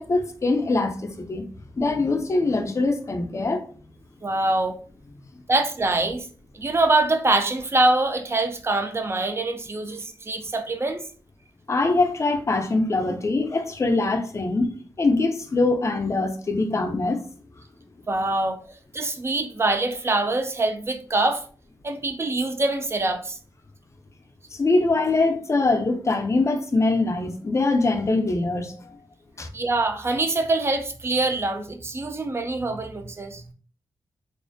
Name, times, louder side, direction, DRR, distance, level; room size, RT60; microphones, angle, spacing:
voice 1, 0.0-1.5 1.8-3.7 11.7-17.2 24.5-29.0 29.4-29.5, left 3 dB, 35° left, 0.4 m, -23 dB
voice 2, 4.2-4.8 5.5-6.3 6.5-11.0 18.1-18.6 18.9-21.4 21.8-23.4 29.5-33.4, right 2 dB, 30° right, 0.4 m, -24 dB
2.4 x 2.0 x 2.6 m
cardioid pair, 80°, 8 cm